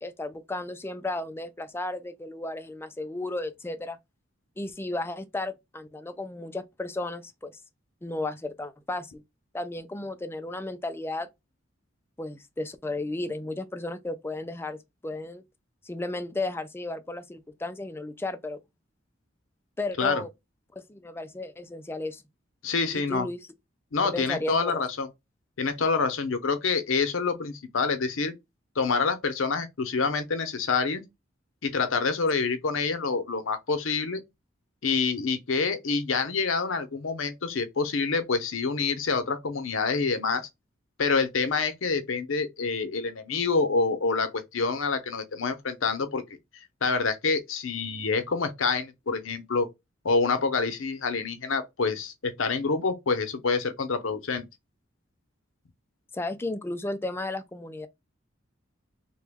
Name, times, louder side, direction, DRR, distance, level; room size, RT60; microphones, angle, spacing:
voice 1, 0.0-4.0 4.6-7.5 8.0-9.2 9.5-11.3 12.2-15.4 15.8-18.6 19.8-20.3 20.7-22.2 22.9-23.4 24.1-24.8 56.1-57.9, left 2 dB, 10° left, 0.4 m, -34 dB
voice 2, 22.6-23.3 23.9-25.1 25.6-28.3 28.8-31.0 31.6-34.2 34.8-40.5 41.0-46.2 46.5-49.7 50.0-54.4, left 4 dB, 85° left, 0.7 m, -27 dB
3.0 x 2.2 x 3.4 m
head